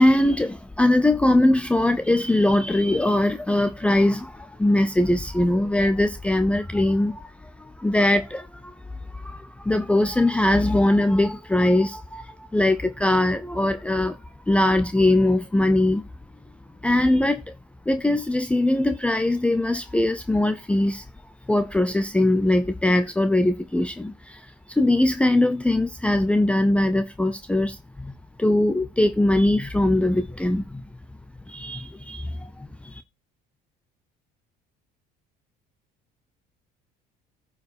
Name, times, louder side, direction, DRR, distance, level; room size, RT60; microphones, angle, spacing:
voice 1, 0.0-7.3 7.6-8.7 9.1-14.2 14.5-16.0 16.8-17.5 17.9-21.0 21.5-28.1 28.4-30.8 31.5-33.0, left 1 dB, 5° left, 0.7 m, -21 dB
10.5 x 4.9 x 6.5 m
cardioid pair, 120°, 18 cm